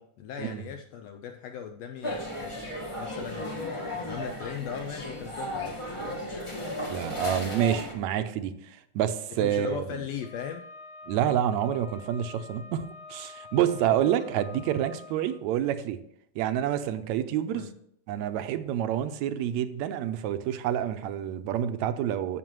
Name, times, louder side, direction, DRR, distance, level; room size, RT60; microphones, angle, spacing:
voice 1, 0.0-2.5 3.0-6.2 9.4-10.7 13.6-13.7 17.5-17.7, left 8 dB, 75° left, 5 dB, 1.5 m, -38 dB
sound 1, 2.0-7.9, left 1 dB, 25° left, 0.6 m, -35 dB
voice 2, 6.9-10.0 11.1-16.0 16.4-17.7 18.1-22.4, right 10 dB, 80° right, 10 dB, 1.9 m, -28 dB
Wind instrument woodwind instrument, 10.2-15.3, left 3 dB, 50° left, 2.0 m, -47 dB
15.0 x 6.2 x 3.1 m, 0.71 s
omnidirectional pair, 3.4 m